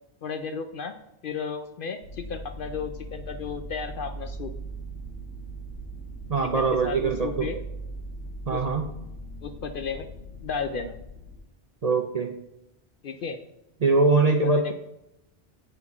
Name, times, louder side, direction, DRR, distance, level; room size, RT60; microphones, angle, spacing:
voice 1, 0.2-0.9 1.2-4.5 6.5-7.6 8.5-8.6 9.4-10.1 10.4-10.9 13.0-13.4 14.6-14.7, left 5 dB, 60° left, 8 dB, 0.6 m, -33 dB
sound 1, 2.0-11.4, right 2 dB, 90° left, 2.8 m, -39 dB
voice 2, 6.3-7.5 8.5-8.9 11.8-12.3 13.8-14.7, right 3 dB, 45° right, 4 dB, 0.5 m, -22 dB
7.8 x 4.8 x 5.4 m, 0.86 s
omnidirectional pair, 1.2 m